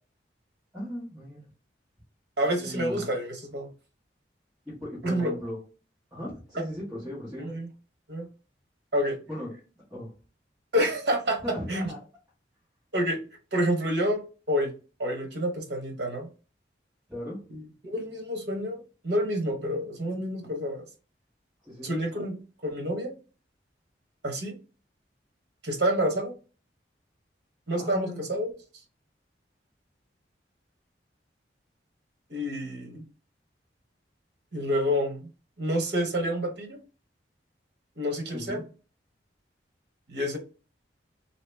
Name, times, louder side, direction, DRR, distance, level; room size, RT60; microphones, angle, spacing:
voice 1, 0.7-1.4 2.6-3.1 4.8-5.6 6.1-7.5 9.3-9.5 9.9-10.1 11.4-12.0 17.1-17.4 21.6-21.9 27.7-28.2 38.3-38.6, left 1 dB, 5° right, -10 dB, 1.4 m, -37 dB
voice 2, 2.4-3.7 5.0-5.3 6.5-6.6 7.4-7.7 8.1-8.3 8.9-9.2 10.7-11.4 11.7-11.9 12.9-13.2 13.5-14.2 14.5-14.7 15.0-16.3 17.5-20.9 21.8-23.1 24.2-24.6 25.6-26.3 27.7-28.5 32.3-33.0 34.5-35.3 35.6-36.8 38.0-38.6 40.1-40.4, equal, 70° right, 4 dB, 1.0 m, -28 dB
2.9 x 2.8 x 3.3 m, 0.35 s
head